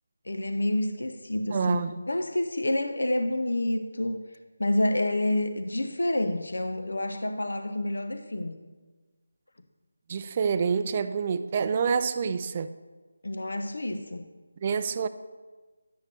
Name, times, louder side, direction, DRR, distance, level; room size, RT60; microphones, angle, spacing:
voice 1, 0.2-4.2 4.6-8.6 13.2-14.3, left 1 dB, 80° left, 7 dB, 0.6 m, -28 dB
voice 2, 1.5-1.9 10.1-12.7 14.6-15.1, right 6 dB, 30° right, 11 dB, 0.3 m, -27 dB
11.0 x 6.5 x 3.4 m, 1.3 s
figure-of-eight pair, 165°, 0 cm